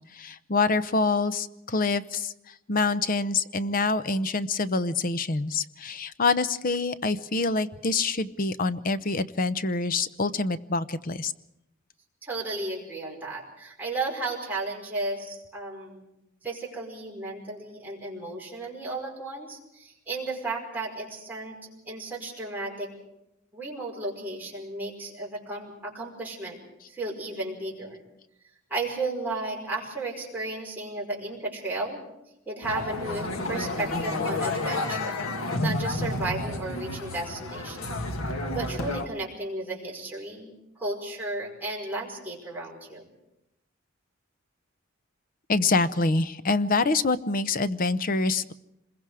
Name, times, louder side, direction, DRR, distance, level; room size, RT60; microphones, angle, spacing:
voice 1, 0.1-2.3 2.7-11.3 45.5-48.5, left 3 dB, 45° left, 14 dB, 0.7 m, -26 dB
voice 2, 12.2-16.0 16.4-21.6 21.9-22.9 23.5-26.6 26.9-28.0 28.7-32.0 32.5-35.2 35.6-38.0 38.5-43.0, right 2 dB, 10° right, -4 dB, 5.3 m, -34 dB
sound 1, 32.6-39.1, left 2 dB, 85° left, 1.7 m, -30 dB
26.5 x 21.5 x 4.9 m, 0.87 s
head